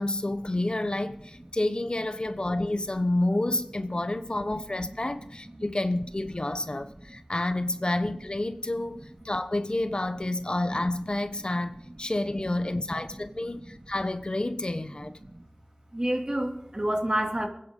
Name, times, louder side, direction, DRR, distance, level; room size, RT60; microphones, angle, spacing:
voice 1, 0.0-15.2, left 1 dB, 50° left, 1.0 m, -29 dB
voice 2, 6.4-7.2 10.2-10.8 13.1-13.5 14.6-14.7 15.0-15.4 15.9-17.5, right 1 dB, 40° right, 2.4 m, -32 dB
27.5 x 10.0 x 3.7 m
wide cardioid pair, 40°, 2 cm